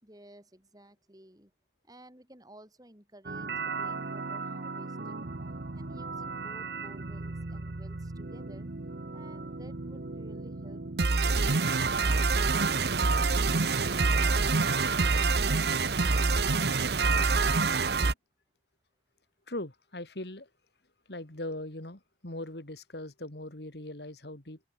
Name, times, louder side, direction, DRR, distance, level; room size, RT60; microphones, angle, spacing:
voice 1, 0.0-1.5 1.8-5.3 5.7-8.7 9.1-10.8, right 1 dB, 20° right, 4.9 m, -54 dB
sound 1, 3.3-18.1, right 4 dB, 65° right, 1.0 m, -28 dB
voice 2, 19.5-20.5 21.1-24.6, left 1 dB, 70° left, 3.0 m, -40 dB
open air
head